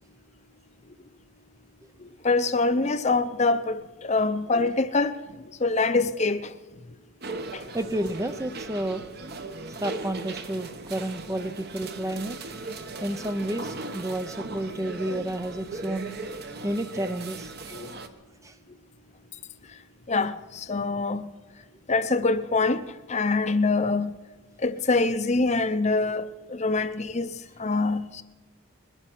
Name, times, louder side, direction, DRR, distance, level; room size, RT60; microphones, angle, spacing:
voice 1, 2.2-5.2 5.6-6.5 7.5-7.6 14.7-14.8 17.7-17.9 20.1-21.2 21.9-22.8 23.1-24.1 24.6-27.3 27.6-28.2, left 3 dB, 30° left, 0.6 m, -24 dB
sound 1, 7.2-18.1, right 2 dB, 45° right, 1.0 m, -38 dB
voice 2, 7.7-9.0 9.7-12.4 13.0-16.1 16.6-17.9 18.4-18.6, right 1 dB, 15° right, 0.4 m, -31 dB
21.5 x 9.9 x 6.2 m
head